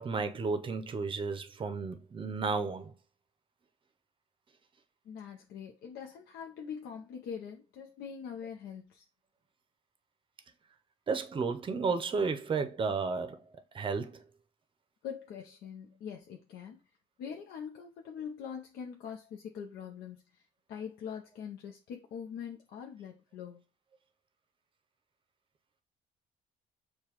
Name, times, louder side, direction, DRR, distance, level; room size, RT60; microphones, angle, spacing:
voice 1, 0.0-2.9 11.1-13.4 13.7-14.2, right 4 dB, 30° right, 0.6 m, -32 dB
voice 2, 5.0-9.0 15.0-16.8 17.2-20.4 20.7-23.6, left 7 dB, 70° left, 0.7 m, -43 dB
6.7 x 2.3 x 2.9 m
cardioid pair, 110°, 17 cm